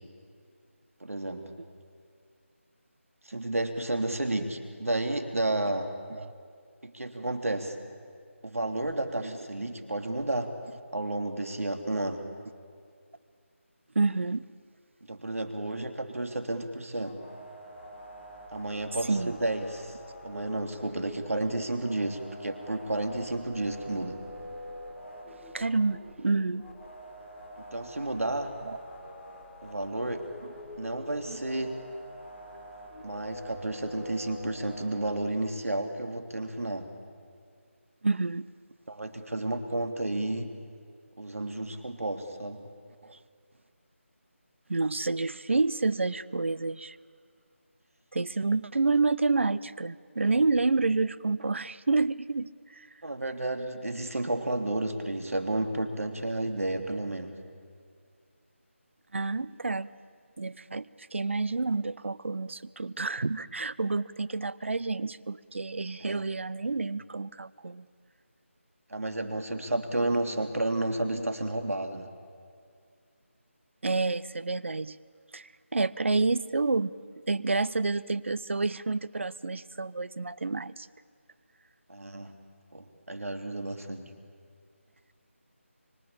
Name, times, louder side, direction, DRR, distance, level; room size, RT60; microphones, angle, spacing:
voice 1, 1.0-1.5 3.2-5.9 6.8-7.8 8.4-10.5 10.9-12.3 15.1-17.2 18.5-19.9 20.2-24.2 27.6-28.5 29.6-30.2 30.8-31.8 33.0-36.9 38.9-40.5 41.2-42.7 53.0-57.3 66.0-66.3 68.9-72.1 81.9-82.4 82.7-84.1, right 2 dB, 85° right, 6 dB, 3.2 m, -31 dB
voice 2, 13.9-14.4 15.7-15.9 19.1-19.4 25.5-26.6 28.7-28.8 30.4-30.5 31.3-31.4 38.0-38.4 43.0-43.2 44.7-47.0 48.1-52.9 59.1-59.9 60.4-67.9 71.1-71.3 73.8-75.0 75.3-76.9 77.3-80.9, right 3 dB, 60° right, 17 dB, 0.8 m, -29 dB
sound 1, 17.0-35.3, equal, 5° left, 2.1 m, -46 dB
25.0 x 24.5 x 8.7 m, 2.2 s
figure-of-eight pair, 170°, 7 cm